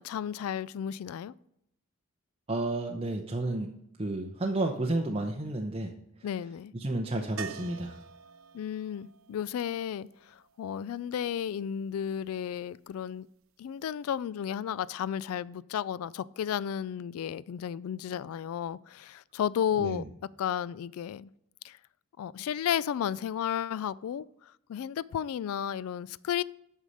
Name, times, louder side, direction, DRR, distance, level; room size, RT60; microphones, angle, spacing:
voice 1, 0.0-1.3 6.2-6.7 8.5-13.3 13.6-20.0 20.4-21.3 21.6-21.8 22.2-26.4, left 9 dB, 80° left, 20 dB, 0.3 m, -33 dB
voice 2, 2.5-3.7 4.0-5.9 6.7-8.0 19.8-20.1, right 2 dB, 25° right, 2 dB, 0.7 m, -31 dB
sound 1, 7.4-11.3 13.9-14.0 14.3-14.4, right 6 dB, 70° right, 0.7 m, -47 dB
8.3 x 5.6 x 6.4 m, 0.77 s
head